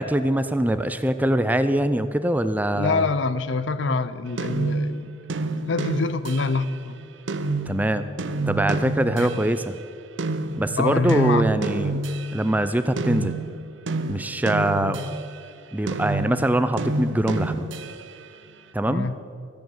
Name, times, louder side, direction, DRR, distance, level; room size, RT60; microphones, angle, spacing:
voice 1, 0.0-3.1 7.7-8.1 8.5-9.8 10.6-12.0 12.3-13.3 14.1-15.1 15.7-17.7 18.7-19.1, right 1 dB, 10° right, 0.4 m, -23 dB
voice 2, 2.7-5.1 5.7-6.9 9.2-9.3 10.8-11.5 18.8-19.2, left 3 dB, 70° left, 0.6 m, -25 dB
sound 1, 4.4-9.7 10.2-15.5 15.9-18.3, right 2 dB, 70° right, 0.6 m, -29 dB
14.5 x 9.2 x 7.1 m
head